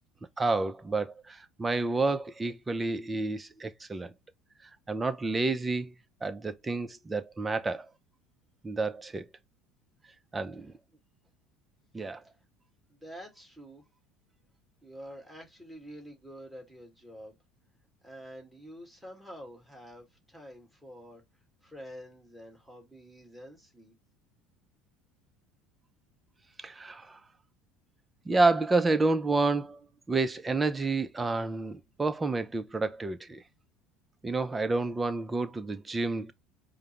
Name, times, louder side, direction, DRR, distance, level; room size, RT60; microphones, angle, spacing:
voice 1, 0.4-4.1 4.9-5.9 6.2-7.9 8.6-9.2 10.3-10.7 11.9-12.2 26.6-27.2 28.3-29.8 30.1-33.4 34.2-36.3, right 3 dB, 20° right, 0.6 m, -29 dB
voice 2, 12.9-13.8 14.8-17.4 18.0-21.2 21.6-23.9, equal, ahead, 2.0 m, -47 dB
4.9 x 2.2 x 3.1 m
hypercardioid pair, 75°, 0 cm